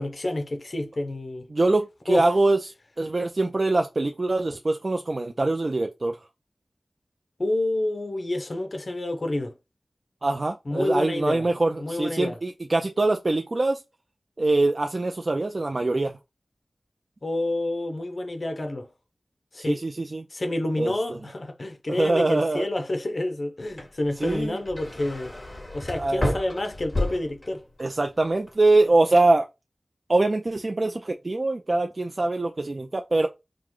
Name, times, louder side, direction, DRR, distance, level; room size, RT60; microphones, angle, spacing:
voice 1, 0.0-1.5 2.1-2.3 7.4-9.5 10.7-11.5 11.8-12.4 17.2-18.9 19.5-19.8 20.3-25.3 25.7-27.6, left 1 dB, 55° left, 0.8 m, -28 dB
voice 2, 1.5-6.2 10.2-13.8 14.4-16.1 19.6-20.3 20.8-21.2 21.9-22.7 24.2-24.6 25.9-26.3 27.8-29.5 30.1-33.3, right 2 dB, 50° right, 0.5 m, -23 dB
sound 1, 23.7-27.9 28.3-28.8, left 1 dB, 30° left, 2.6 m, -32 dB
5.0 x 2.3 x 3.7 m
wide cardioid pair, 60°, 0 cm